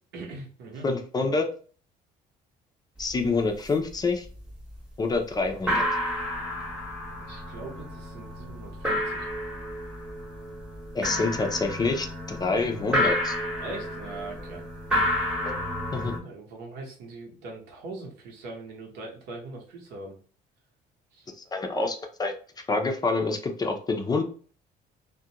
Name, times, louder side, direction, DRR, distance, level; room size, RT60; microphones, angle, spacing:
voice 1, 0.1-0.9 7.2-9.3 13.6-14.6 15.9-20.2 21.1-21.3, right 3 dB, 85° right, 1 dB, 0.9 m, -41 dB
voice 2, 0.8-1.5 3.0-4.3 5.0-5.8 10.9-13.4 15.4-15.5 15.9-16.2 21.5-22.3 22.7-24.2, left 3 dB, 25° left, 4 dB, 0.4 m, -27 dB
sound 1, 3.0-3.1 3.4-3.9 4.2-4.8 5.1-5.2 5.5-16.2, left 1 dB, 5° right, 0.8 m, -30 dB
2.4 x 2.1 x 2.8 m, 0.42 s
cardioid pair, 110°, 17 cm